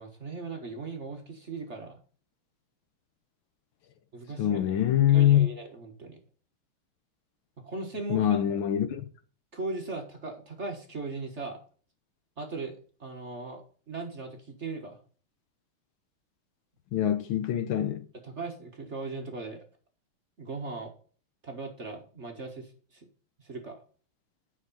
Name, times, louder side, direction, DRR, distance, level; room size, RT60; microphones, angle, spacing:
voice 1, 0.0-2.0 4.1-4.7 5.1-6.2 7.6-8.2 9.5-11.6 12.4-15.0 18.2-19.6 20.4-20.9 21.4-23.1 23.4-23.8, right 3 dB, 35° right, 1.6 m, -38 dB
voice 2, 4.4-5.5 8.1-9.0 16.9-18.1, left 11 dB, 70° left, 1.5 m, -24 dB
9.7 x 5.8 x 5.5 m
omnidirectional pair, 2.4 m